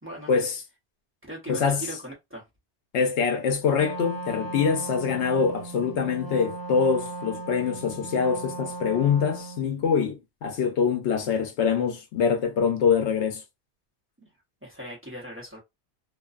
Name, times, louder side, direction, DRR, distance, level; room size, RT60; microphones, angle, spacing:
voice 1, 0.0-0.3 1.3-2.4 14.2-14.3 14.6-15.6, right 1 dB, 10° right, 0.8 m, -39 dB
voice 2, 1.5-1.8 2.9-13.4, left 6 dB, 80° left, 0.9 m, -24 dB
Wind instrument woodwind instrument, 3.8-9.7, right 2 dB, 35° right, 1.4 m, -37 dB
2.5 x 2.2 x 2.4 m
omnidirectional pair, 1.2 m